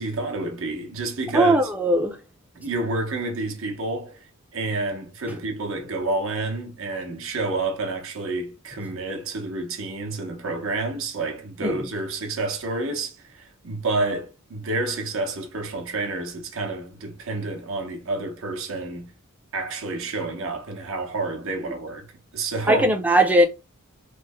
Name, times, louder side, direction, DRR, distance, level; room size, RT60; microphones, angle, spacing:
voice 1, 0.0-1.7 2.5-19.1 19.5-22.1 22.3-22.9, right 3 dB, 65° right, 0.8 m, -29 dB
voice 2, 1.3-2.1 11.6-11.7 22.7-23.4, right 1 dB, 5° right, 0.4 m, -18 dB
3.2 x 2.1 x 3.4 m
head